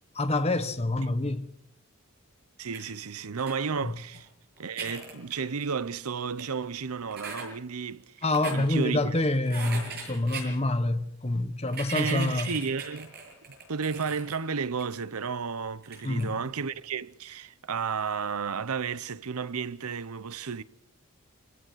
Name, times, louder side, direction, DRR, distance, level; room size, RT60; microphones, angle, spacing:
voice 1, 0.1-1.5 3.8-3.9 8.2-12.5 16.0-16.4, left 2 dB, 30° left, 1.3 m, -27 dB
voice 2, 2.6-4.3 4.6-8.2 8.5-9.2 11.9-13.1 13.7-20.6, right 5 dB, 85° right, 0.8 m, -32 dB
sound 1, 2.7-2.8 3.4-3.6 4.1-4.2 4.6-5.9 6.4-6.5 7.1-7.5 8.2-8.6 9.5-10.5 11.6-14.4 14.8-14.9 15.8-16.2, right 4 dB, 50° right, 7.4 m, -39 dB
27.5 x 17.0 x 6.3 m
head